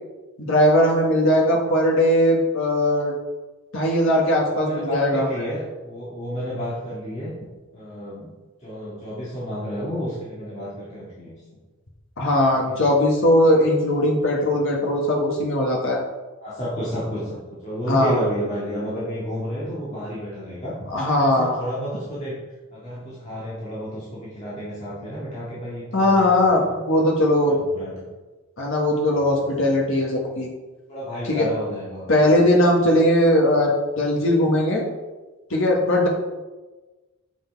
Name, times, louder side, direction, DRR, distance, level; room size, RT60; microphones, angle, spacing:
voice 1, 0.4-3.1 3.7-5.3 12.2-16.0 17.9-18.2 20.9-21.6 25.9-27.6 28.6-30.5 31.2-31.5 32.1-34.8 35.5-36.1, left 1 dB, 60° left, -2 dB, 1.6 m, -19 dB
voice 2, 4.5-7.3 7.7-8.3 8.6-11.4 12.5-12.8 16.4-20.8 21.2-22.4 22.7-26.8 27.5-28.0 29.4-29.5 30.9-32.1, equal, 30° left, -9 dB, 1.9 m, -31 dB
8.2 x 6.0 x 4.7 m, 1.2 s
head